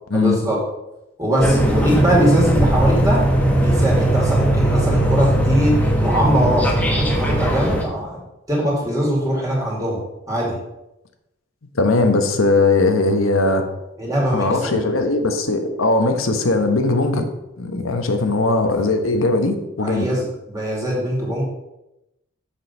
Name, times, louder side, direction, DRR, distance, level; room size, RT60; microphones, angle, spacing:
voice 1, 0.1-0.6 1.2-3.3 3.6-8.2 8.5-10.0 10.3-10.6 14.0-14.9 19.8-21.4, equal, 15° right, -4 dB, 2.3 m, -21 dB
sound 1, 1.4-7.8, right 1 dB, 5° left, 1.1 m, -18 dB
voice 2, 11.7-13.7 14.3-17.3 17.6-20.1, left 2 dB, 85° left, 6 dB, 1.1 m, -19 dB
7.2 x 6.4 x 5.4 m, 0.90 s
head